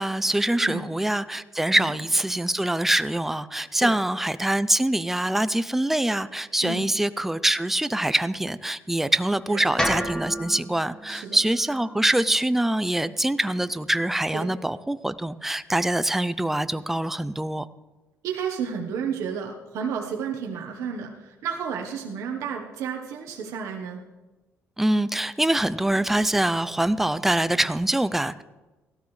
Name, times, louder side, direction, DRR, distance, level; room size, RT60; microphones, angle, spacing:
voice 1, 0.0-17.7 24.8-28.4, right 1 dB, 5° right, 14 dB, 0.4 m, -24 dB
sound 1, 9.8-13.9, equal, 10° left, 1.4 m, -33 dB
voice 2, 18.2-24.0, right 6 dB, 85° right, 1 dB, 1.1 m, -32 dB
17.0 x 12.5 x 3.2 m, 1.2 s
cardioid pair, 120°, 5 cm